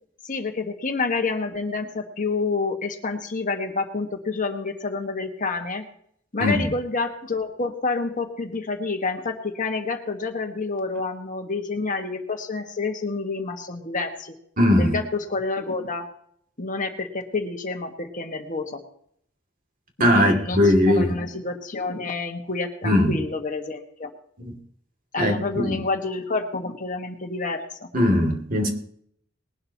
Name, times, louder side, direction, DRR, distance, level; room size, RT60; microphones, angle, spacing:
voice 1, 0.2-5.9 6.3-14.3 14.8-16.1 16.6-18.8 20.0-24.1 25.1-27.9, left 3 dB, 45° left, 1.6 m, -28 dB
voice 2, 14.6-15.0 20.0-21.1 22.8-23.2 24.4-24.5 25.2-25.8 27.9-28.7, left 1 dB, 45° right, 2.6 m, -19 dB
20.5 x 12.0 x 3.0 m
head